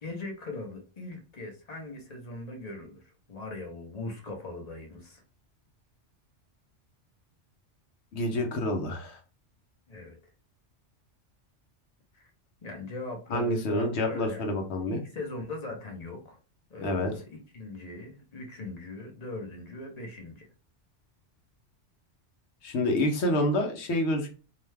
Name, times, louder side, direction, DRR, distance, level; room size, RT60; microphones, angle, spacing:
voice 1, 0.0-5.2 9.9-10.2 12.1-12.3 12.6-16.4 16.7-20.5, left 3 dB, 40° left, 0.7 m, -40 dB
voice 2, 8.1-9.2 13.3-15.0 16.8-17.1 22.6-24.3, left 1 dB, 70° left, 0.9 m, -28 dB
2.7 x 2.1 x 3.2 m
omnidirectional pair, 1.2 m